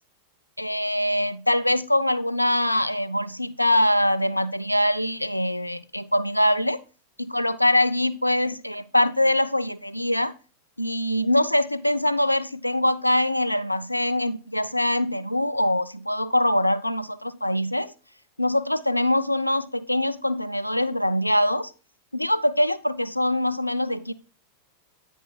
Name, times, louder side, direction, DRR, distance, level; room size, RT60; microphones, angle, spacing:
voice 1, 0.6-6.8 7.2-10.3 10.8-17.9 18.4-21.7 22.1-24.1, left 1 dB, 90° left, 0.5 m, -23 dB
10.0 x 9.1 x 2.3 m
figure-of-eight pair, 90°, 0 cm